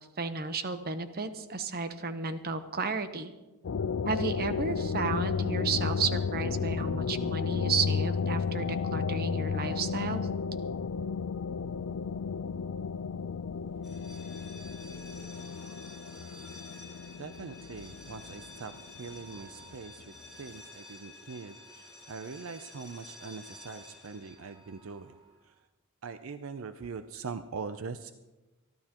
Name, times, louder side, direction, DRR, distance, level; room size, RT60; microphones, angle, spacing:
voice 1, 0.2-3.3 4.1-10.3, right 4 dB, 45° right, 10 dB, 0.9 m, -33 dB
sound 1, 3.6-19.9, left 5 dB, 70° left, 0.4 m, -33 dB
sound 2, 13.8-25.5, left 2 dB, ahead, 5.5 m, -51 dB
voice 2, 17.2-25.2 25.5-25.6 26.0-28.2, right 5 dB, 70° right, 10 dB, 0.5 m, -42 dB
26.5 x 12.0 x 2.9 m, 1.1 s
head